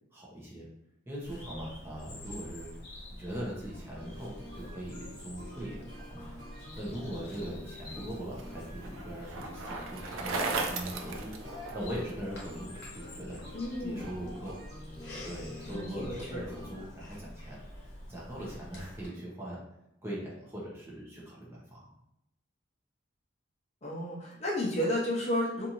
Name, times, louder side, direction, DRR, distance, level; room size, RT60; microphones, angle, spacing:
voice 1, 0.1-0.7 1.1-2.7 3.1-6.3 6.7-13.4 13.8-14.6 15.2-19.6 20.0-21.9, equal, 10° right, -6 dB, 0.7 m, -41 dB
Bird vocalization bird call bird song, 1.2-19.1, left 1 dB, 55° left, 0.9 m, -47 dB
sound 1, 3.9-16.8, left 1 dB, 45° right, 1.4 m, -49 dB
Bicycle, 7.7-12.1, right 3 dB, 85° right, 0.4 m, -36 dB
voice 2, 13.5-14.1 15.7-16.4 23.8-25.7, left 1 dB, 35° left, -4 dB, 0.6 m, -32 dB
2.6 x 2.5 x 2.9 m, 0.86 s
head